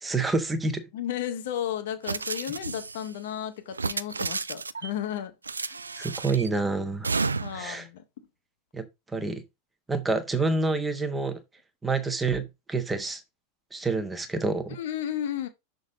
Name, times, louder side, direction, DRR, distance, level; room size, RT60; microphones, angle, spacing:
voice 1, 0.0-0.8 6.0-7.1 7.5-7.9 8.7-9.4 9.9-11.4 11.8-13.2 13.7-14.8, right 3 dB, 10° right, 1.1 m, -28 dB
voice 2, 0.9-5.3 5.6-5.8 7.4-8.0 14.7-15.5, left 10 dB, 55° left, 1.1 m, -33 dB
sound 1, 2.0-3.1 3.7-4.9 5.4-6.5 7.0-7.7, right 4 dB, 75° right, 0.3 m, -31 dB
6.3 x 3.9 x 4.8 m
figure-of-eight pair, 90°, 0 cm